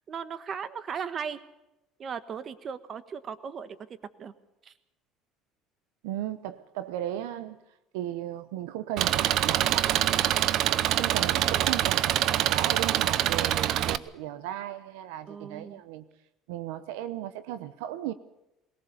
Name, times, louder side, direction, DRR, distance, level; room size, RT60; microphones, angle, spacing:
voice 1, 0.1-1.4 2.0-4.3 4.6-4.7 11.2-11.7 13.7-14.0 15.3-15.8, right 7 dB, 40° right, 1.4 m, -38 dB
voice 2, 6.0-7.6 7.9-10.0 11.0-16.0 16.5-18.1, right 12 dB, 85° right, 0.9 m, -36 dB
Engine, 9.0-14.0, right 12 dB, 60° right, 0.7 m, -25 dB
21.0 x 18.5 x 6.9 m
supercardioid pair, 95°, 0 cm